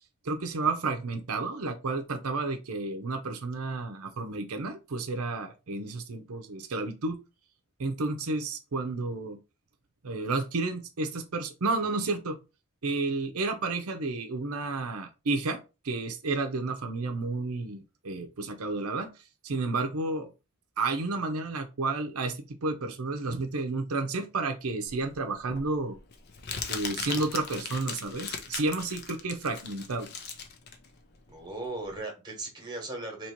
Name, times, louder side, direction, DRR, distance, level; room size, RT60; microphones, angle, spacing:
voice 1, 0.2-7.2 7.8-9.4 10.0-12.4 12.8-19.1 19.4-20.3 20.8-26.0 26.7-30.1, right 3 dB, 85° right, 0.7 m, -31 dB
Crumpling crinkling, 24.9-31.9, left 6 dB, 50° left, 0.6 m, -39 dB
voice 2, 31.3-33.3, right 2 dB, 20° right, 1.2 m, -37 dB
3.0 x 2.9 x 4.4 m
head